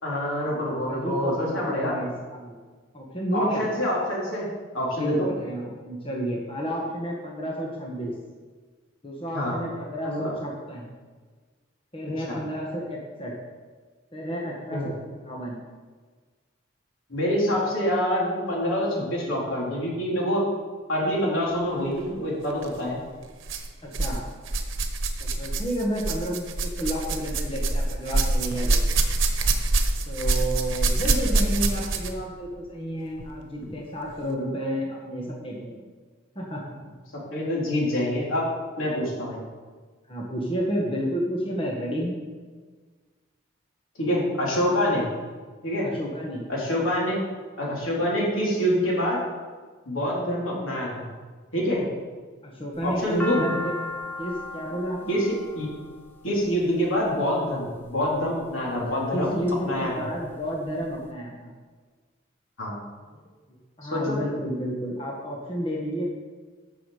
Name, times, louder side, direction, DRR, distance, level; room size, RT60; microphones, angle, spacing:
voice 1, 0.0-2.0 3.3-4.5 4.7-5.3 9.3-9.6 10.0-10.3 12.3-12.4 14.7-14.9 17.1-20.5 20.9-23.0 37.3-38.5 38.8-39.4 44.0-45.1 45.6-45.9 46.5-47.2 47.6-49.2 49.9-51.0 51.5-51.9 52.8-53.4 55.1-55.7 56.2-59.3 59.6-59.9 62.6-62.8 63.8-64.2, equal, 85° left, -4 dB, 3.6 m, -26 dB
voice 2, 0.9-2.6 2.9-3.6 5.0-8.1 9.0-10.9 11.9-13.3 14.1-15.6 23.8-24.2 25.2-28.8 30.1-35.8 36.3-36.9 40.1-42.2 45.8-46.5 52.4-53.8 54.2-55.2 58.8-61.5 63.8-66.1, equal, 25° left, -2 dB, 1.5 m, -31 dB
sound 1, 22.5-22.7 23.4-24.2 24.4-32.2 33.2-33.3 34.1-34.2, right 2 dB, 75° right, 1.1 m, -25 dB
sound 2, 52.8-57.0 57.8-58.3 58.9-59.5 59.9-60.0 60.1-61.0, left 2 dB, 10° left, 0.8 m, -36 dB
14.0 x 6.2 x 5.0 m, 1.4 s
head